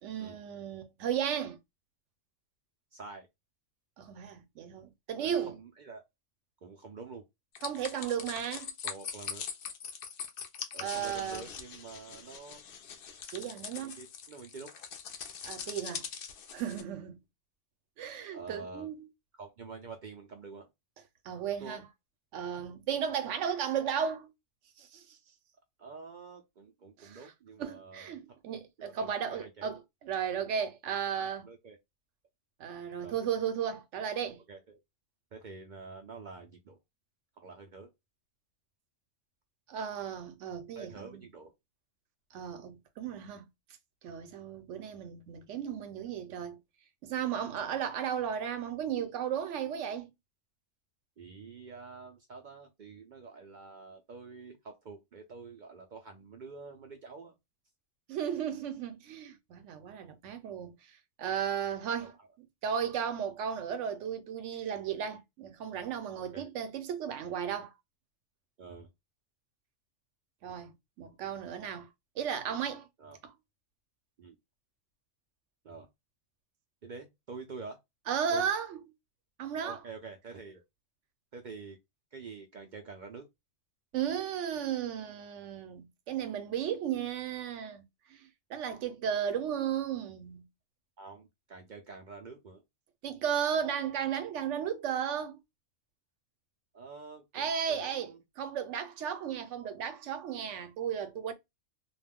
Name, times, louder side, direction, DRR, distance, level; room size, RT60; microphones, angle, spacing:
voice 1, 0.0-1.6 4.0-5.5 7.6-8.7 10.8-11.5 13.3-14.0 15.4-16.0 16.5-17.2 18.0-19.1 21.2-21.8 22.3-24.3 24.8-25.0 27.0-27.2 27.6-31.5 32.6-34.4 39.7-41.2 42.3-43.5 44.0-46.6 47.0-50.1 58.1-62.1 62.6-67.7 70.4-71.9 72.2-72.9 73.2-73.3 78.1-78.8 79.4-79.8 83.9-87.8 88.1-90.5 93.0-95.4 97.3-101.3, right 8 dB, 75° right, 0.9 m, -35 dB
voice 2, 2.9-3.3 5.2-6.0 6.6-7.2 8.8-9.4 10.7-12.6 13.8-14.7 15.6-15.7 18.3-18.9 19.3-20.7 21.6-21.8 25.8-28.2 28.8-29.7 30.9-31.8 33.0-33.2 34.5-34.8 35.3-36.8 37.4-37.9 40.8-41.5 51.2-57.3 62.0-62.3 66.2-66.5 68.6-68.9 73.0-73.2 74.2-74.4 75.6-75.9 76.8-77.8 78.3-78.5 79.6-80.6 81.3-81.8 82.1-83.3 91.0-92.6 96.7-98.2, right 4 dB, 60° right, 0.5 m, -47 dB
sound 1, 7.5-16.8, left 7 dB, 60° left, 0.6 m, -42 dB
2.4 x 2.2 x 3.4 m
omnidirectional pair, 1.3 m